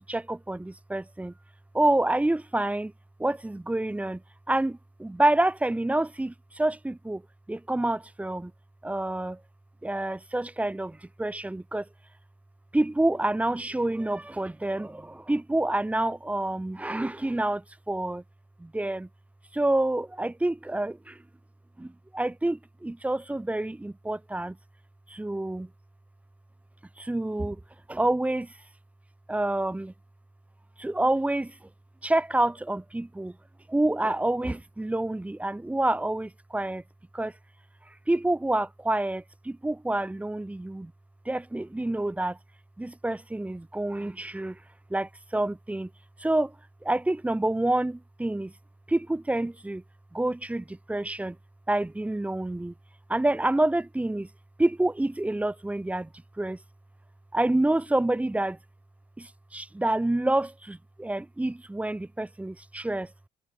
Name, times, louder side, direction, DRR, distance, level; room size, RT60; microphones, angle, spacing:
voice 1, 0.1-1.3 1.7-2.9 3.2-4.2 4.5-7.2 7.5-8.5 8.8-9.4 9.8-11.9 12.7-18.2 18.6-19.1 19.5-21.2 21.8-24.6 25.1-25.7 27.0-27.6 27.9-28.5 29.3-29.9 30.8-31.5 32.0-33.3 33.7-36.8 37.1-37.3 38.1-40.9 41.2-42.4 42.8-44.6 44.9-45.9 46.2-46.5 46.8-48.5 48.9-49.8 50.1-51.4 51.7-52.7 53.1-54.3 54.6-56.1 56.4-56.6 57.3-58.6 59.2-63.1, right 1 dB, 10° right, 1.0 m, -28 dB
cardioid pair, 110°, 17 cm